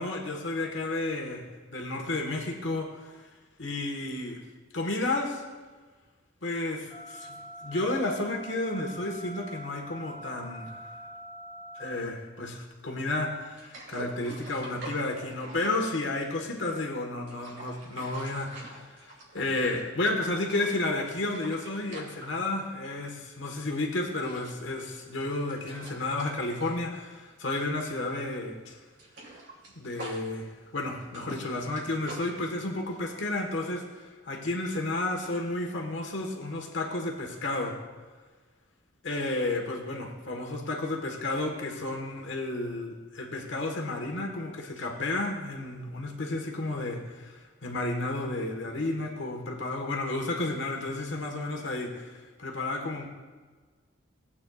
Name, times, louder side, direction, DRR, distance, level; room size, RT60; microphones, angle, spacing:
voice 1, 0.0-1.4 1.7-3.2 3.6-4.4 4.7-5.4 6.4-10.8 11.8-28.8 29.7-30.5 30.7-37.8 39.0-52.1 52.4-53.1, left 2 dB, 75° left, 1 dB, 1.5 m, -32 dB
sound 1, 6.9-11.9, right 1 dB, 45° left, 2.7 m, -44 dB
sound 2, 13.6-16.6 17.1-19.9 20.2-23.1 23.4-23.6 23.9-27.7 28.0-28.2 28.5-32.3, right 2 dB, 70° right, 2.9 m, -46 dB
17.5 x 8.6 x 2.4 m, 1.4 s
head